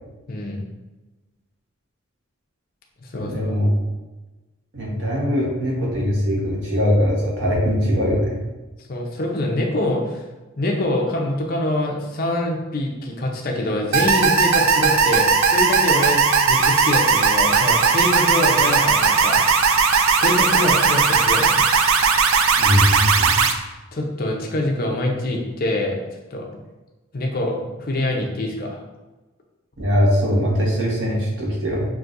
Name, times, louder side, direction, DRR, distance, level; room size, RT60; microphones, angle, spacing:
voice 1, 0.3-0.6 3.0-3.5 8.9-10.2 10.6-19.4 20.1-21.6 23.9-26.0 26.3-26.5 27.1-28.8, left 1 dB, 45° left, 0 dB, 0.6 m, -25 dB
voice 2, 3.2-3.7 4.7-8.4 22.6-23.4 29.8-31.9, equal, 60° right, -3 dB, 1.2 m, -21 dB
sound 1, 13.9-23.5, right 5 dB, 80° right, 0.4 m, -17 dB
6.1 x 2.6 x 2.5 m, 1.2 s
head